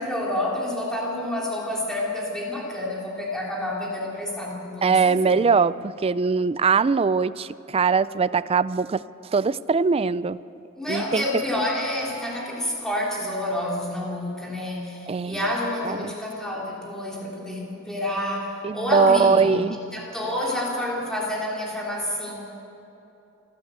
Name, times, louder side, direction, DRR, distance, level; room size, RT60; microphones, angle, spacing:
voice 1, 0.0-5.4 10.8-22.3, left 1 dB, 5° left, -4 dB, 3.6 m, -29 dB
voice 2, 4.8-9.0 9.3-10.4 10.9-11.2 11.6-11.7 15.1-15.4 15.8-16.1 18.6-19.8, right 5 dB, 25° right, 17 dB, 0.3 m, -21 dB
27.5 x 12.5 x 8.0 m, 3.0 s
head